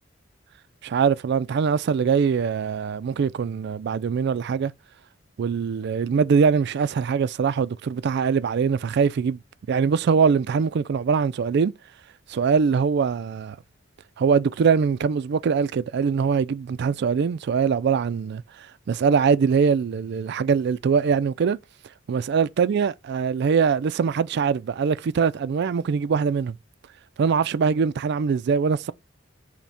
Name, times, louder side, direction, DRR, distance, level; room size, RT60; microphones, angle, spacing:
voice 1, 0.8-4.7 5.4-9.4 9.7-11.7 12.3-13.6 14.2-18.4 18.9-21.6 22.1-26.6 27.2-28.9, right 6 dB, 55° right, 0.3 m, -22 dB
5.8 x 2.2 x 4.1 m
head